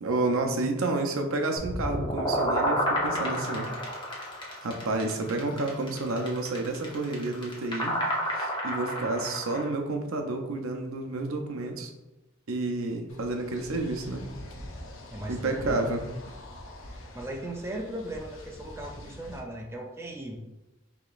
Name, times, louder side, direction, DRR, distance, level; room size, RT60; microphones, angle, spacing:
voice 1, 0.0-3.7 4.6-8.0 8.4-11.9 12.5-14.2 15.3-16.0, right 2 dB, 75° right, 3 dB, 0.6 m, -30 dB
sound 1, 1.6-9.7, equal, 25° left, 0.8 m, -30 dB
sound 2, 13.1-19.4, left 1 dB, 65° left, 0.7 m, -45 dB
voice 2, 15.1-15.8 16.9-20.4, right 1 dB, 10° right, 1 dB, 0.4 m, -38 dB
4.9 x 2.9 x 2.4 m, 1.0 s
head